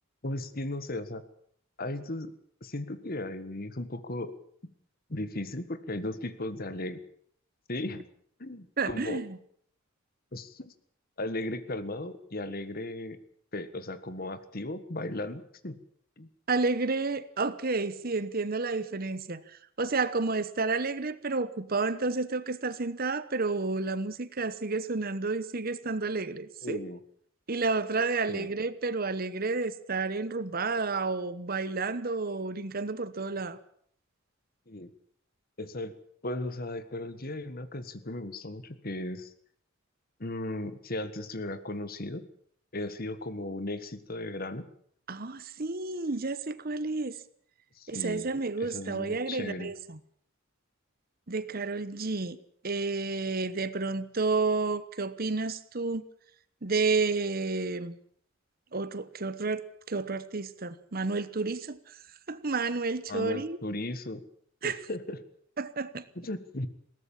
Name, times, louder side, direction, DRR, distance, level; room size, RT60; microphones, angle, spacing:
voice 1, 0.2-1.2 1.8-2.3 2.6-4.3 5.1-7.0 7.7-8.0 8.4-9.2 10.3-10.7 11.2-13.2 13.5-15.8 16.2-16.3 26.6-27.0 28.3-28.5 34.7-34.9 35.6-35.9 36.2-39.3 40.2-42.3 42.7-44.7 47.8-48.3 48.6-49.7 63.1-64.2 64.6-65.2 66.1-66.7, left 1 dB, 45° left, 1.6 m, -36 dB
voice 2, 8.8-9.4 16.5-26.8 27.5-33.6 45.1-47.2 47.9-50.0 51.3-52.4 52.6-56.0 56.6-58.0 58.7-59.6 59.9-61.8 62.3-63.6 64.6-64.8 65.6-66.0, right 3 dB, 45° right, 1.0 m, -30 dB
21.0 x 17.5 x 7.4 m
head